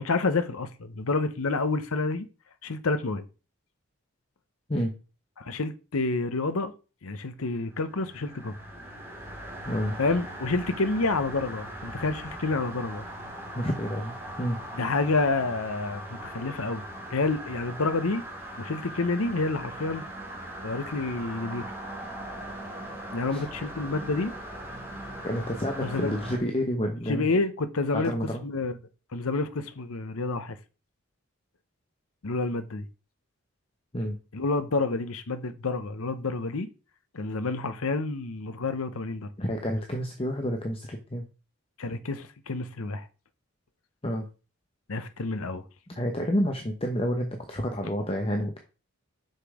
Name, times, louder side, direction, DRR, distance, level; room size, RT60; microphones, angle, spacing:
voice 1, 0.0-2.3 2.6-3.3 5.4-6.7 7.0-8.5 10.0-13.0 14.7-16.8 17.1-18.2 18.6-20.0 20.6-21.6 23.1-24.3 25.8-26.1 27.1-28.1 28.4-28.7 29.1-30.6 32.2-32.9 34.3-36.7 37.1-39.3 41.8-43.0 44.9-45.6, left 3 dB, 80° left, 0.8 m, -28 dB
sound 1, 7.7-26.4, right 1 dB, 10° right, 2.5 m, -40 dB
voice 2, 9.7-10.0 13.5-14.6 23.3-23.4 25.2-27.3 27.9-28.4 33.9-34.2 39.4-41.3 44.0-44.2 45.9-48.6, equal, 25° left, 0.9 m, -29 dB
6.6 x 6.0 x 4.8 m
head